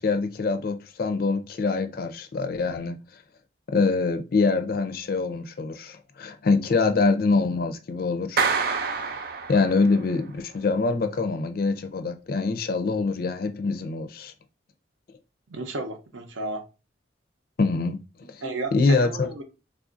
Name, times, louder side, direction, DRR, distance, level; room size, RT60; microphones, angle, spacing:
voice 1, 0.0-3.0 3.7-8.5 9.5-14.3 17.6-18.4 18.7-19.3, left 4 dB, 50° left, 0.4 m, -24 dB
Clapping, 8.4-10.1, right 5 dB, 50° right, 0.4 m, -27 dB
voice 2, 15.5-16.6 18.4-19.4, right 2 dB, 90° right, 0.7 m, -33 dB
3.4 x 2.4 x 2.5 m
head